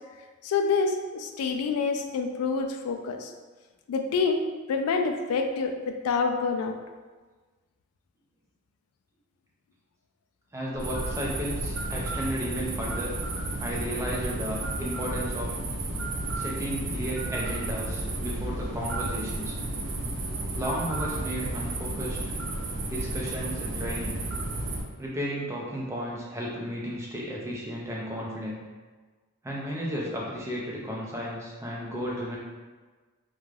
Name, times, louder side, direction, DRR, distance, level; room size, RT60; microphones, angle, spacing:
voice 1, 0.4-3.3 3.9-4.4 4.7-6.7, left 4 dB, 85° left, 5 dB, 0.3 m, -27 dB
voice 2, 10.5-13.2 13.6-15.6 16.3-19.6 20.5-22.3 22.9-24.2 25.0-28.6 29.4-32.4, equal, 10° right, -4 dB, 0.4 m, -33 dB
sound 1, 10.8-24.8, right 2 dB, 75° right, 0.4 m, -32 dB
2.4 x 2.2 x 3.2 m, 1.3 s
head